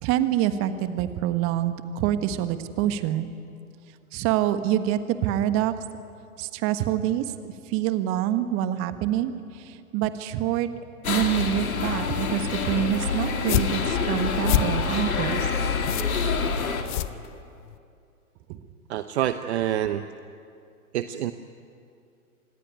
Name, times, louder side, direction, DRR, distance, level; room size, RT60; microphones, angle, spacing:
voice 1, 0.0-3.3 4.1-5.7 6.4-10.7 11.1-15.5 18.5-18.6, right 11 dB, 30° right, 10 dB, 1.4 m, -26 dB
sound 1, 11.0-16.8, left 5 dB, 70° left, 3.2 m, -27 dB
sound 2, 13.3-17.8, left 15 dB, 35° left, 0.8 m, -29 dB
voice 2, 18.9-20.0 20.9-21.3, right 12 dB, 45° right, 10 dB, 1.0 m, -26 dB
26.5 x 20.0 x 9.2 m, 2.5 s
hypercardioid pair, 120°, 44 cm